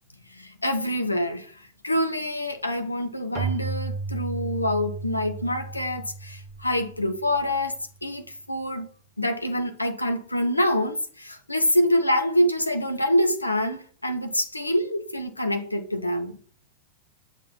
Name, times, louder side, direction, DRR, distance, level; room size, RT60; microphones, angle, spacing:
voice 1, 0.3-7.7 8.0-8.9 9.2-16.4, left 1 dB, 85° left, 0.8 m, -26 dB
Keyboard (musical), 3.3-7.8, right 4 dB, 30° right, 0.5 m, -34 dB
7.1 x 4.5 x 4.3 m
figure-of-eight pair, 90°, 0 cm